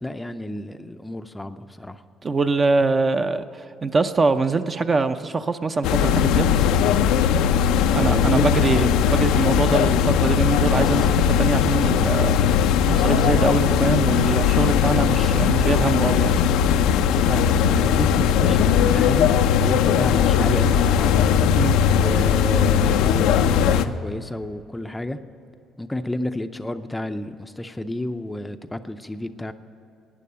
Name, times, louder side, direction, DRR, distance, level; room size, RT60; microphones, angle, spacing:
voice 1, 0.0-2.0 7.9-8.6 17.2-21.2 21.9-25.2 25.8-29.5, left 1 dB, 10° left, 9 dB, 0.5 m, -31 dB
voice 2, 2.2-6.5 7.9-12.4 12.9-16.4 21.6-21.8, right 3 dB, 30° right, 9 dB, 0.6 m, -23 dB
sound 1, 5.8-23.8, left 8 dB, 90° left, 0.5 m, -19 dB
12.5 x 9.2 x 8.6 m, 2.9 s
cardioid pair, 95°, 0 cm